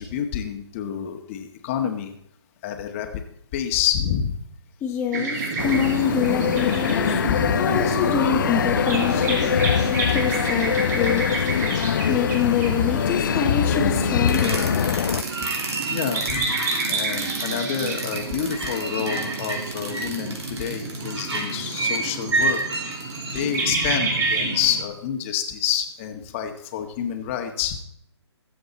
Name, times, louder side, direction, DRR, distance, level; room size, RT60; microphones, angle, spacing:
voice 1, 0.0-2.1 2.6-3.1 3.5-4.4 7.3-7.6 7.9-8.2 11.7-11.8 15.9-16.4 16.8-22.6 23.3-27.8, left 9 dB, 30° left, 5 dB, 1.6 m, -28 dB
voice 2, 4.8-7.1 7.6-9.5 10.1-11.3 12.1-14.7, left 8 dB, 15° left, -2 dB, 1.3 m, -26 dB
sound 1, 5.1-24.8, right 4 dB, 40° right, 3.1 m, -29 dB
sound 2, 5.6-15.2, left 8 dB, 45° left, 0.5 m, -23 dB
sound 3, 14.3-24.4, right 3 dB, 70° right, 4.5 m, -29 dB
22.5 x 7.8 x 4.3 m, 0.73 s
figure-of-eight pair, 145°, 14 cm